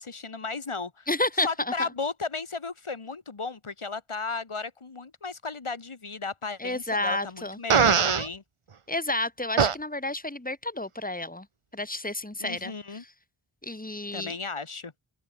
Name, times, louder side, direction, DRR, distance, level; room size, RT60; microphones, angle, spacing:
voice 1, 0.0-1.1 1.4-8.4 12.4-13.0 14.1-14.9, left 4 dB, 80° left, 7.5 m, -35 dB
voice 2, 1.1-1.5 1.8-1.9 6.6-7.6 8.9-11.5 11.7-13.1 13.6-14.3, left 2 dB, 15° left, 4.1 m, -30 dB
Fart, 7.7-8.3 9.6-9.8, right 6 dB, 85° right, 1.8 m, -20 dB
open air
wide cardioid pair, 50°, 49 cm